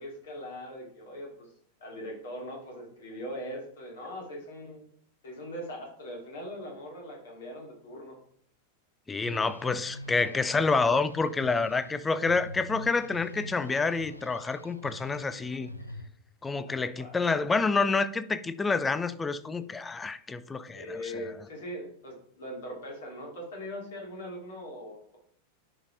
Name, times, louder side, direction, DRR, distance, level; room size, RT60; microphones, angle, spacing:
voice 1, 0.0-1.5 1.8-4.8 5.2-8.2 16.6-17.2 20.7-25.2, equal, 60° left, 2.5 m, -41 dB
voice 2, 9.1-15.7 16.4-21.2, left 4 dB, 15° left, 0.4 m, -28 dB
sound 1, 9.2-16.1, left 1 dB, 85° left, 0.5 m, -45 dB
11.0 x 4.2 x 3.3 m
figure-of-eight pair, 90°, 0 cm